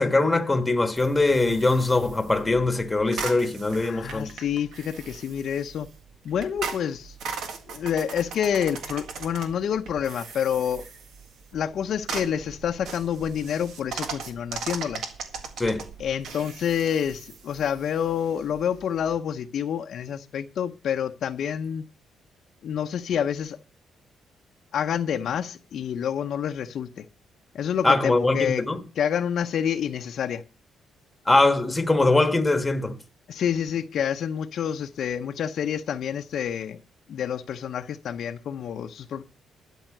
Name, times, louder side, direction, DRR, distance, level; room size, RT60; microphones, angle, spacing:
voice 1, 0.0-4.3 15.6-15.9 27.8-28.8 31.3-33.0, left 2 dB, 10° left, 1.3 m, -22 dB
sound 1, 1.0-19.2, right 5 dB, 75° right, 1.8 m, -39 dB
voice 2, 3.8-5.9 6.2-7.1 7.7-10.8 11.5-15.1 16.0-21.9 22.6-23.6 24.7-27.0 27.5-28.6 29.0-30.4 33.3-36.8 37.1-39.2, left 8 dB, 60° left, 0.7 m, -28 dB
12.0 x 5.6 x 7.8 m
cardioid pair, 135°, 0 cm